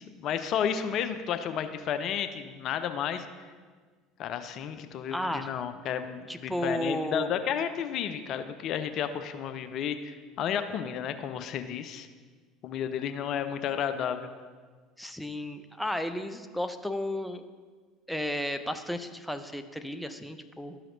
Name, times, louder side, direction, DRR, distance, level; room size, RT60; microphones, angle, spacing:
voice 1, 0.0-3.3 4.2-12.1 12.6-14.3, left 8 dB, 50° left, 10 dB, 0.4 m, -32 dB
voice 2, 5.1-5.6 6.3-7.3 15.0-17.5 18.1-20.8, left 1 dB, ahead, 8 dB, 0.5 m, -33 dB
12.0 x 5.8 x 2.6 m, 1.5 s
hypercardioid pair, 65°, 0 cm